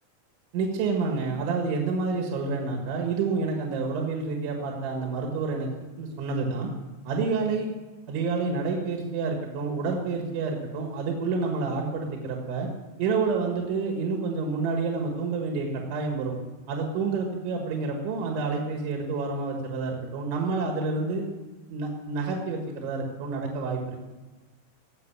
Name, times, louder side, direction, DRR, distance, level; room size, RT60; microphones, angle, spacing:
voice 1, 0.5-5.7 6.0-6.7 7.1-7.7 8.1-12.7 13.0-16.4 16.7-21.3 21.7-24.0, right 4 dB, 75° right, 1 dB, 4.0 m, -28 dB
18.5 x 7.8 x 7.4 m, 1.2 s
omnidirectional pair, 5.4 m